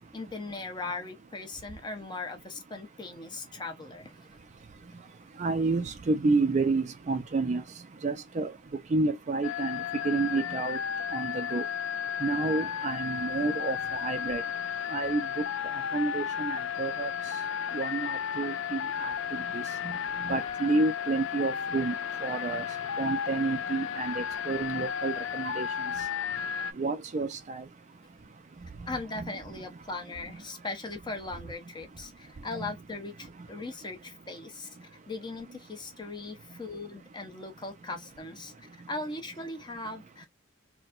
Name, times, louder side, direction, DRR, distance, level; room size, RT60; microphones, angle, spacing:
voice 1, 0.1-4.1 28.9-40.3, left 3 dB, 20° left, 0.8 m, -39 dB
voice 2, 5.4-7.6 8.0-8.5 8.9-10.8 11.1-11.6 12.2-14.4 14.9-15.4 15.9-17.1 17.7-20.0 20.2-21.9 22.2-22.6 23.0-25.7 26.8-27.6 29.2-29.3 32.5-32.7, right 3 dB, 35° right, 0.4 m, -30 dB
sound 1, 9.4-26.7, left 8 dB, 70° left, 0.4 m, -33 dB
4.1 x 2.2 x 2.4 m
head